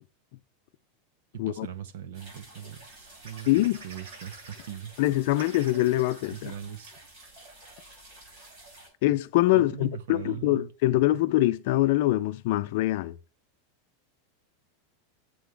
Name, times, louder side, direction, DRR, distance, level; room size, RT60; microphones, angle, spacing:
voice 1, 1.3-3.5 3.8-4.9 6.3-7.0 9.5-10.7, right 9 dB, 70° right, 1.2 m, -40 dB
sound 1, 2.1-8.9, right 1 dB, 35° right, 5.8 m, -50 dB
sound 2, 3.3-4.7 5.0-5.1 5.3-6.4 7.0-7.1 7.4-7.6, right 4 dB, 85° right, 3.9 m, -47 dB
voice 2, 3.5-3.8 5.0-6.5 9.0-13.2, left 16 dB, 50° left, 0.6 m, -24 dB
9.6 x 7.0 x 3.5 m
supercardioid pair, 175°, 0 cm